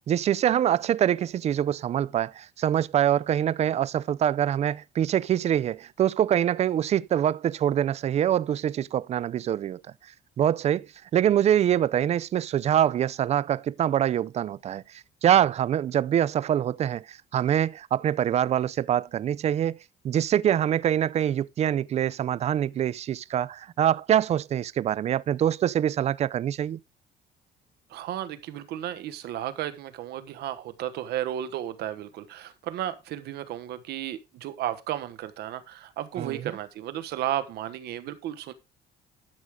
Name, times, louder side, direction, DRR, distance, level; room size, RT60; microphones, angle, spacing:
voice 1, 0.1-9.8 10.4-19.8 20.0-26.8 36.2-36.5, right 10 dB, 40° right, 0.4 m, -24 dB
voice 2, 27.9-38.5, right 12 dB, 75° right, 1.2 m, -33 dB
12.5 x 6.3 x 3.6 m
cardioid pair, 110°, 17 cm